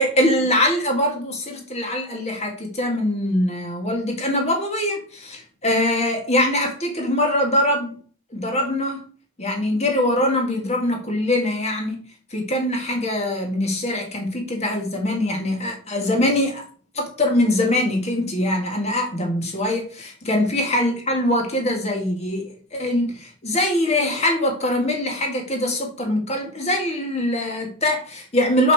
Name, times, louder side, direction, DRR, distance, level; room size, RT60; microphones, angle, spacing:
voice 1, 0.0-8.0 8.3-9.0 9.4-12.0 12.3-16.6 16.9-28.7, left 1 dB, 30° left, 2.0 m, -23 dB
6.5 x 5.6 x 4.8 m
head